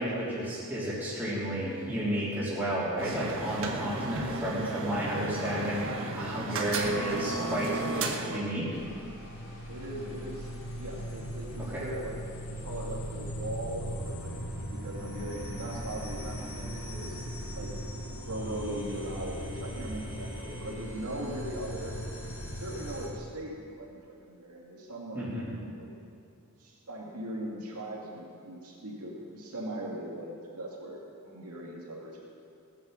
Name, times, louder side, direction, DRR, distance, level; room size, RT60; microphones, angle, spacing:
voice 1, 0.0-5.9 6.2-7.7 8.2-8.7 11.6-11.9 25.1-25.5, right 1 dB, 10° right, -10 dB, 3.3 m, -32 dB
sound 1, 3.0-8.4, right 2 dB, 60° right, 1.4 m, -33 dB
sound 2, 8.7-23.1, equal, 60° left, 4.1 m, -39 dB
voice 2, 9.7-10.5 10.8-12.2 12.4-17.2 17.5-17.7 18.3-21.9 22.6-25.3 25.6-25.9 26.6-32.2, right 1 dB, 85° right, -3 dB, 2.3 m, -39 dB
18.5 x 9.3 x 6.5 m, 2.4 s
head